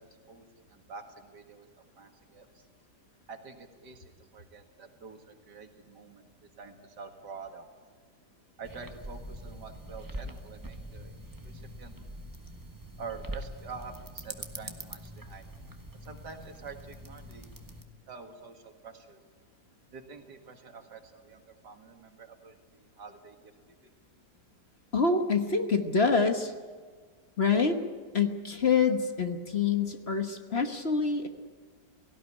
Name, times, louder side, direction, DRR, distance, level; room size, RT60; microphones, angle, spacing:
voice 1, 0.0-2.7 3.3-6.3 6.6-7.7 8.6-11.2 11.4-11.9 13.0-15.5 16.0-17.5 18.1-19.2 19.9-23.9, right 5 dB, 80° right, 5 dB, 2.5 m, -47 dB
sound 1, 8.6-17.8, right 1 dB, 15° right, 1.2 m, -43 dB
voice 2, 24.9-26.5 27.4-27.8 28.1-31.3, left 5 dB, 40° left, 6 dB, 1.4 m, -26 dB
17.5 x 16.5 x 10.0 m, 1.5 s
omnidirectional pair, 1.8 m